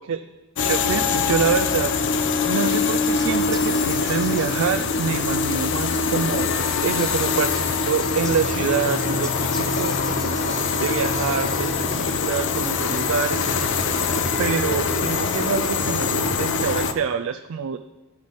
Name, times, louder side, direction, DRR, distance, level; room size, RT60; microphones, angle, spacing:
sound 1, 0.6-16.9, left 5 dB, 60° left, 0.6 m, -23 dB
voice 1, 0.6-2.1 2.5-13.7 14.4-17.8, right 6 dB, 70° right, 8 dB, 0.4 m, -26 dB
Bird, 2.9-12.5, equal, ahead, 1.0 m, -42 dB
sound 2, 5.7-15.1, equal, 40° right, 1.1 m, -40 dB
12.0 x 5.1 x 4.0 m, 1.1 s
head